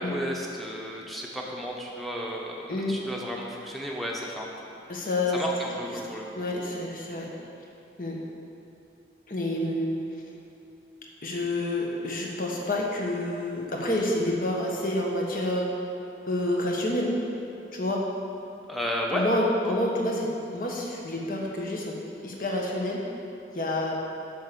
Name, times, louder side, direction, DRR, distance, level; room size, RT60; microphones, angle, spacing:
voice 1, 0.0-4.7 5.3-6.4 18.7-19.2 19.6-19.8, equal, ahead, -2 dB, 1.0 m, -33 dB
voice 2, 4.9-5.4 6.3-7.3 8.0-8.2 9.3-10.0 11.2-15.7 16.3-17.1 17.7-18.0 19.1-22.0 22.2-23.0 23.5-24.0, left 1 dB, 50° left, -1 dB, 1.4 m, -28 dB
7.8 x 6.6 x 6.8 m, 2.7 s
head